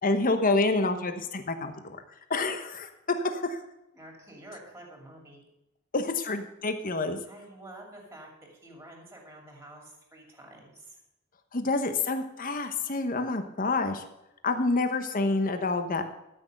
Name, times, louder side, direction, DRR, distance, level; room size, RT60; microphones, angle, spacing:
voice 1, 0.0-2.0 2.3-3.6 5.9-7.2 11.5-14.0 14.4-16.0, left 3 dB, 40° left, 8 dB, 1.0 m, -28 dB
voice 2, 3.9-5.4 7.2-11.0, right 1 dB, 10° right, 1 dB, 2.6 m, -48 dB
13.0 x 6.3 x 6.7 m, 0.90 s
head